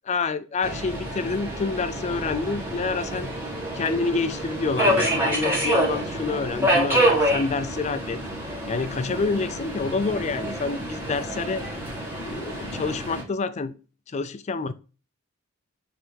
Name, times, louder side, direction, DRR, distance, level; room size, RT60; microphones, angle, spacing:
voice 1, 0.1-3.3 3.7-8.2 8.7-11.6 12.2-13.8 14.1-14.7, left 4 dB, 35° left, 0.4 m, -28 dB
Subway metro underground, 0.6-13.2, right 1 dB, 10° right, 2.1 m, -27 dB
6.3 x 3.4 x 4.5 m
head